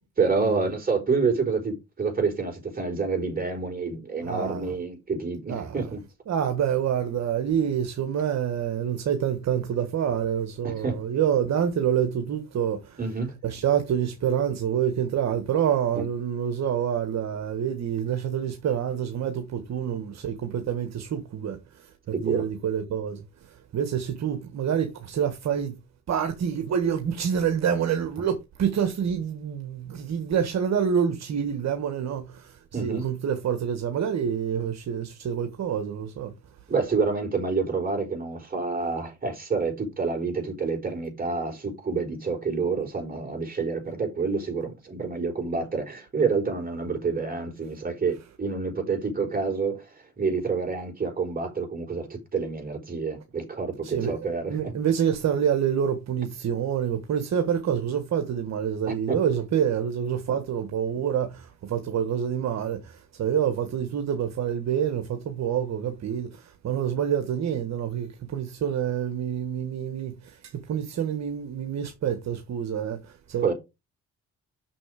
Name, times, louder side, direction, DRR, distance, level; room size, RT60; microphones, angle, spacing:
voice 1, 0.2-6.0 10.6-11.0 13.0-13.4 15.9-16.0 22.1-22.4 32.7-33.1 36.7-54.7 58.9-59.2 73.4-73.5, right 4 dB, 30° right, 4.6 m, -28 dB
voice 2, 4.2-4.7 5.5-5.7 6.3-13.0 13.4-25.7 26.1-36.3 53.8-73.5, right 8 dB, 60° right, 1.5 m, -27 dB
6.7 x 6.2 x 5.0 m
cardioid pair, 90°, 30 cm